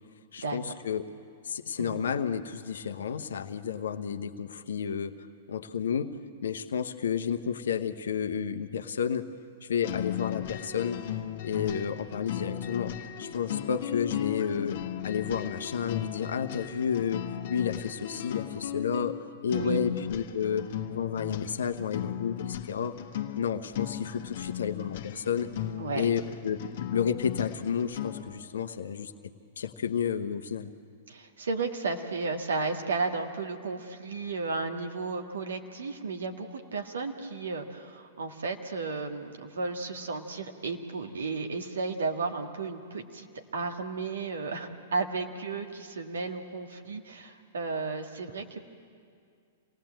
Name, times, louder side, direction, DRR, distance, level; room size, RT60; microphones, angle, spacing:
voice 1, 0.3-1.1 1.4-5.1 5.5-6.1 6.4-9.3 9.6-11.0 11.4-14.8 15.0-19.1 19.4-23.0 23.4-25.5 25.9-29.1 29.6-30.7, left 7 dB, 75° left, 8 dB, 1.0 m, -31 dB
sound 1, 9.8-28.4, left 11 dB, 60° left, 1.3 m, -36 dB
voice 2, 31.1-43.3 43.5-48.6, right 4 dB, 80° right, 3 dB, 1.9 m, -33 dB
27.0 x 18.0 x 7.8 m, 2.2 s
hypercardioid pair, 115°, 0 cm